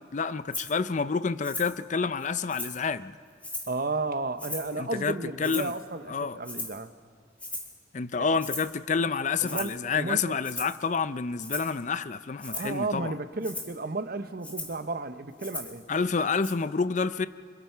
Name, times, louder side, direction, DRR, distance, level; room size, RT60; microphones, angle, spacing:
voice 1, 0.1-3.2 4.8-5.7 6.1-6.4 7.9-13.1 15.9-17.3, left 5 dB, 40° left, 0.5 m, -28 dB
Rattle (instrument), 0.5-0.7 1.4-1.8 2.2-2.9 3.4-3.8 4.4-4.8 5.4-5.9 6.4-6.8 7.4-7.8 8.4-8.8 9.4-9.8 10.4-10.8 11.4-11.8 12.4-12.8 13.4-13.7 14.4-14.8 15.4-15.8 16.4-16.5, left 2 dB, 5° left, 2.1 m, -37 dB
voice 2, 3.7-6.9 9.4-10.3 12.5-15.9, right 3 dB, 50° right, 0.8 m, -33 dB
28.0 x 26.0 x 4.5 m
head